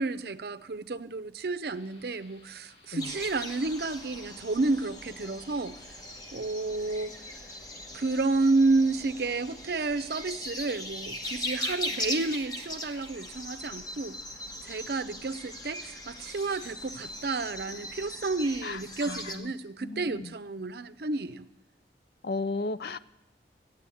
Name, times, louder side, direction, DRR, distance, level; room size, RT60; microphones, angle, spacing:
voice 1, 0.0-5.8 6.3-7.1 7.9-14.2 14.6-21.5, right 3 dB, 60° right, 12 dB, 0.6 m, -30 dB
sound 1, 1.7-9.7, left 2 dB, 85° left, 3.0 m, -59 dB
sound 2, 3.0-19.4, left 1 dB, 20° left, 1.1 m, -39 dB
voice 2, 18.6-19.5 19.8-20.3 22.2-23.0, left 3 dB, 60° left, 14 dB, 0.5 m, -35 dB
14.0 x 9.0 x 8.4 m, 0.93 s
head